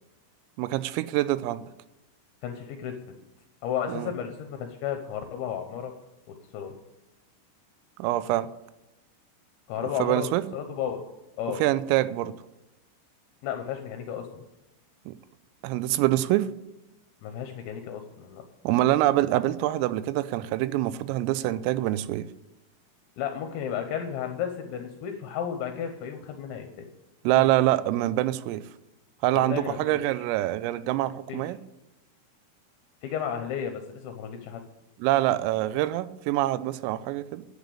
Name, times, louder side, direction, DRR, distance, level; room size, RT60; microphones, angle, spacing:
voice 1, 0.6-1.7 3.9-4.1 8.0-8.5 10.0-10.4 11.6-12.4 15.1-15.2 15.6-16.5 18.6-22.3 27.2-28.6 29.2-31.6 35.0-37.5, right 15 dB, 90° right, 15 dB, 3.3 m, -25 dB
voice 2, 2.4-3.0 3.6-5.9 6.5-6.7 9.7-10.3 10.5-11.0 11.4-11.6 13.4-14.3 17.2-18.4 23.2-26.9 27.3-27.5 29.4-30.0 31.3-31.4 33.0-34.6, left 8 dB, 75° left, 5 dB, 2.9 m, -33 dB
10.5 x 8.2 x 8.5 m, 0.94 s
omnidirectional pair, 5.9 m